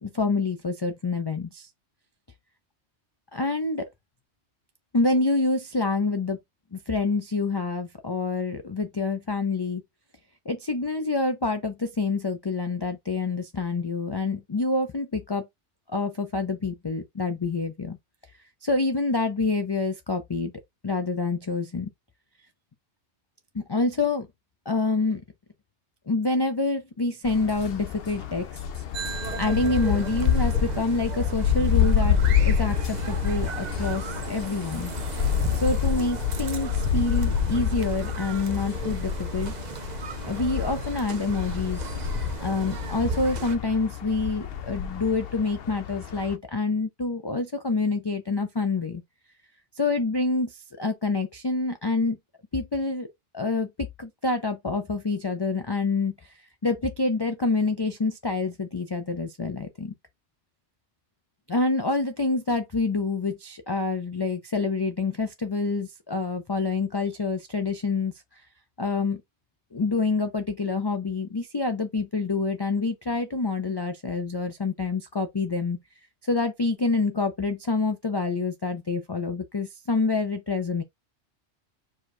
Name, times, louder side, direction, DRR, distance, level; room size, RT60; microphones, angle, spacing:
voice 1, 0.0-1.7 3.3-3.9 4.9-6.4 6.7-9.8 10.5-15.5 15.9-18.0 18.6-20.5 20.8-21.9 23.5-24.3 24.7-25.2 26.1-28.6 29.2-34.9 35.5-39.5 40.2-41.9 42.4-49.0 49.8-52.2 52.5-53.1 53.3-56.3 56.6-59.9 61.5-68.1 68.8-69.2 69.7-75.8 76.2-80.8, left 3 dB, 35° left, 0.4 m, -27 dB
sound 1, 27.2-46.4, left 8 dB, 60° left, 0.8 m, -28 dB
sound 2, 28.9-43.6, right 7 dB, 45° right, 0.7 m, -36 dB
4.9 x 2.4 x 4.2 m
omnidirectional pair, 1.2 m